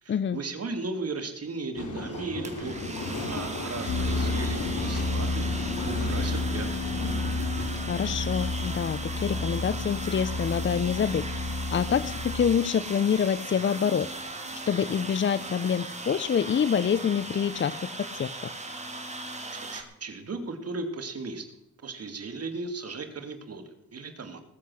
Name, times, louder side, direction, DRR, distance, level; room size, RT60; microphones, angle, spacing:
voice 1, 0.0-6.7 19.5-21.4 21.8-24.4, right 3 dB, 50° right, 7 dB, 2.5 m, -36 dB
sound 1, 1.8-15.8 16.1-17.6, left 2 dB, 70° left, 3.4 m, -38 dB
sound 2, 2.4-19.8, right 2 dB, 20° right, 2.4 m, -38 dB
sound 3, 3.9-12.5, left 3 dB, 55° left, 1.1 m, -31 dB
voice 2, 7.9-11.2 11.7-14.1 14.7-18.5, left 7 dB, 40° left, 16 dB, 0.6 m, -26 dB
19.5 x 7.9 x 6.3 m, 0.82 s
cardioid pair, 80°, 31 cm